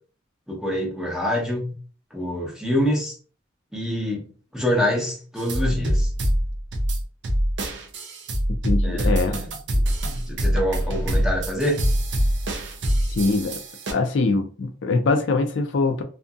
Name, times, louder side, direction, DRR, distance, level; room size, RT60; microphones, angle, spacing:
voice 1, 0.5-1.7 2.1-3.1 3.7-4.2 4.5-6.1 8.8-9.5 10.3-11.8, equal, 5° right, 0.8 m, -25 dB
sound 1, 5.4-13.9, equal, 65° right, 0.5 m, -24 dB
voice 2, 8.6-9.4 13.1-13.6 13.9-16.0, left 3 dB, 70° left, 0.4 m, -23 dB
2.7 x 2.5 x 2.3 m
head